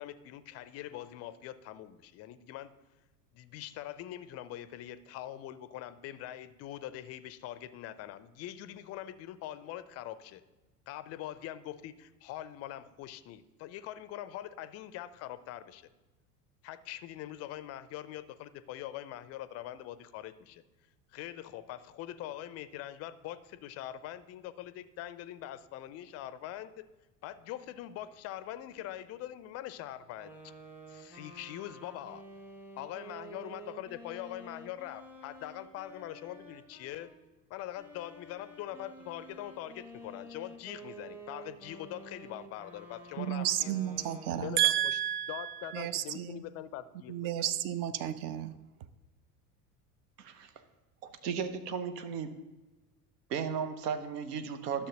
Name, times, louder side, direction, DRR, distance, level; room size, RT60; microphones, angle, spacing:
voice 1, 0.0-2.7 3.3-10.4 10.9-15.9 16.6-20.6 21.1-26.7 27.2-30.5 30.9-32.2 32.8-37.1 37.5-43.7 44.4-45.0 45.3-47.1, left 12 dB, 35° left, 14 dB, 0.4 m, -43 dB
sound 1, 30.1-37.2 37.7-44.9, right 1 dB, 5° right, 0.9 m, -50 dB
voice 2, 43.2-46.4 47.1-48.6, right 12 dB, 45° right, 13 dB, 0.6 m, -32 dB
voice 3, 50.2-50.5 51.2-52.3 53.3-54.9, right 6 dB, 70° right, 10 dB, 0.9 m, -35 dB
12.0 x 6.6 x 2.9 m, 1.1 s
figure-of-eight pair, 75°, 49 cm